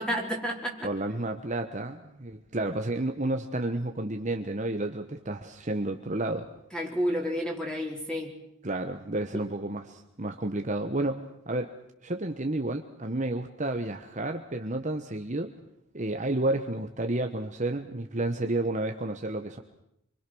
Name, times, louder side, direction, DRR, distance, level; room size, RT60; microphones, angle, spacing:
voice 1, 0.0-0.9 6.7-8.3 9.3-9.4, equal, 5° left, 0 dB, 4.7 m, -30 dB
voice 2, 0.8-6.4 8.6-11.8 12.0-15.5 15.9-19.6, right 2 dB, 35° right, 5 dB, 1.2 m, -31 dB
27.5 x 24.5 x 6.3 m, 0.78 s
head